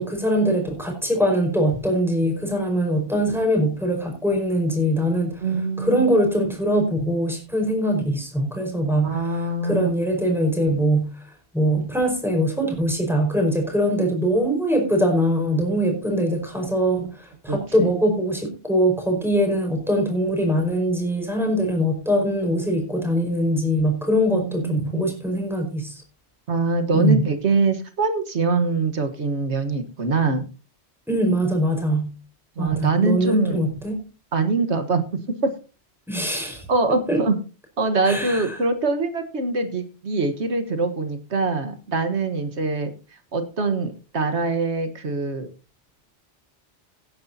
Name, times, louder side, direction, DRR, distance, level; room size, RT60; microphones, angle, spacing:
voice 1, 0.0-5.4 5.8-9.2 9.6-11.1 11.5-26.0 26.9-27.2 31.1-32.1 32.6-34.0 36.1-36.6 37.1-37.2 38.0-38.5, equal, ahead, 1 dB, 4.9 m, -22 dB
voice 2, 5.4-6.1 9.0-10.0 17.5-17.9 24.3-25.1 26.5-30.4 32.6-33.6 34.3-35.0 35.4-35.5 36.7-37.3 37.8-42.9 43.3-45.5, right 3 dB, 70° right, 8 dB, 1.7 m, -23 dB
17.5 x 9.9 x 2.8 m, 0.33 s
omnidirectional pair, 1.2 m